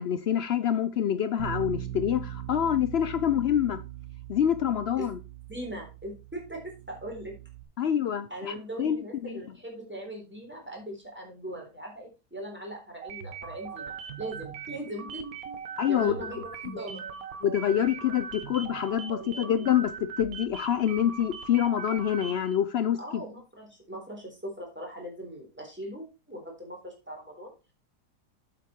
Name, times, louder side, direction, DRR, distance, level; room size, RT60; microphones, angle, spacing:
voice 1, 0.0-3.8 4.3-5.2 7.8-9.4 15.8-16.2 17.4-19.9 20.2-23.2, left 10 dB, 75° left, 0.5 m, -26 dB
Bass guitar, 1.4-7.6, right 13 dB, 90° right, 1.9 m, -40 dB
voice 2, 5.5-7.3 8.3-15.2 15.9-17.0 23.0-27.5, right 1 dB, 5° right, 3.7 m, -40 dB
sound 1, 13.0-22.6, right 6 dB, 60° right, 1.5 m, -40 dB
8.3 x 7.6 x 4.4 m
omnidirectional pair, 1.8 m